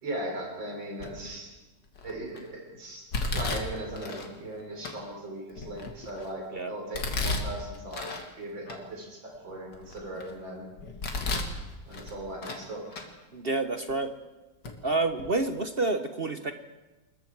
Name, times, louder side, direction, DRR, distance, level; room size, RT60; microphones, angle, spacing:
voice 1, 0.0-1.5 2.0-3.0 3.3-10.7 11.9-13.1, right 1 dB, 80° right, 0 dB, 4.8 m, -38 dB
Domestic sounds home sounds, 1.0-1.4 1.9-2.4 3.1-4.3 4.8-4.9 5.5-6.3 6.9-8.3 8.7-8.8 9.3-10.3 10.8-11.6 11.9-12.6 12.9-13.1 13.9-14.0 14.6-14.7 15.1-15.3, left 2 dB, 65° left, 2.8 m, -33 dB
voice 2, 13.3-14.1 14.8-16.5, right 2 dB, 40° right, 7 dB, 1.0 m, -28 dB
28.0 x 21.0 x 4.7 m, 1.1 s
omnidirectional pair, 2.0 m